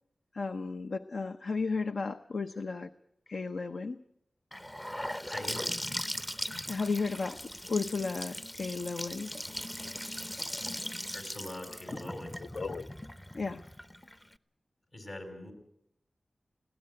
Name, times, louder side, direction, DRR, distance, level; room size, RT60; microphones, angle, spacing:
voice 1, 0.3-2.9 3.3-4.0 6.7-9.4 12.5-12.9 13.3-13.6, left 4 dB, 70° left, 9 dB, 0.7 m, -34 dB
Gurgling / Sink (filling or washing) / Bathtub (filling or washing), 4.5-14.3, equal, 15° left, 0.7 m, -39 dB
voice 2, 5.2-5.7 11.1-12.4 14.9-15.5, left 1 dB, 55° left, 5 dB, 5.5 m, -42 dB
21.0 x 17.0 x 8.8 m, 0.78 s
wide cardioid pair, 80°, 0 cm